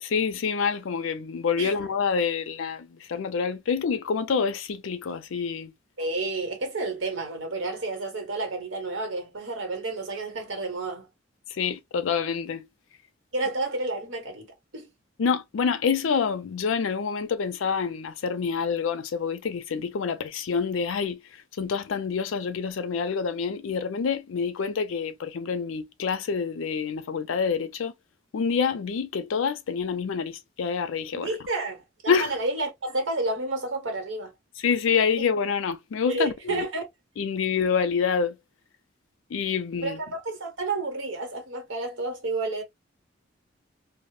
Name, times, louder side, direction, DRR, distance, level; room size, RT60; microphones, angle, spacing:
voice 1, 0.0-5.7 11.5-12.7 15.2-21.2 21.6-27.9 28.3-31.3 32.1-32.3 34.6-36.6 37.2-38.4 39.3-40.0, left 6 dB, 85° left, 0.4 m, -27 dB
voice 2, 6.0-11.1 13.3-14.9 31.1-34.3 35.2-35.3 36.1-36.8 39.8-42.6, right 2 dB, 80° right, 1.1 m, -30 dB
2.1 x 2.0 x 3.0 m
head